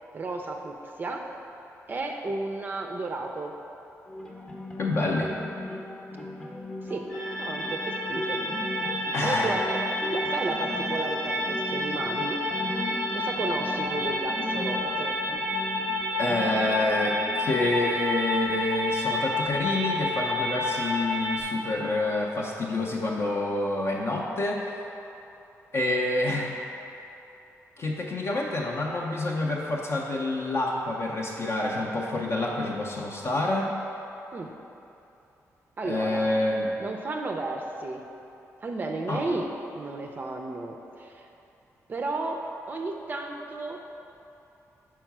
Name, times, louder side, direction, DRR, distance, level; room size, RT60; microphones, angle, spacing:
voice 1, 0.1-1.2 1.9-3.5 6.8-7.1 7.4-8.5 9.2-9.8 10.1-12.4 13.1-15.2 34.3-34.5 35.8-36.3 36.8-38.0 38.6-39.5 39.7-41.3 41.9-42.4 42.7-43.8, right 3 dB, 35° right, 2 dB, 0.4 m, -33 dB
sound 1, 4.1-19.0, left 1 dB, 20° left, 0.7 m, -38 dB
voice 2, 4.8-5.3 9.1-9.5 16.2-24.7 25.7-26.5 27.8-33.7 35.8-36.7 39.1-39.2, left 2 dB, 50° left, -2 dB, 0.6 m, -27 dB
sound 2, 7.1-21.4, left 1 dB, 80° left, 1.0 m, -30 dB
4.6 x 4.4 x 5.9 m, 2.9 s
wide cardioid pair, 140°, 6 cm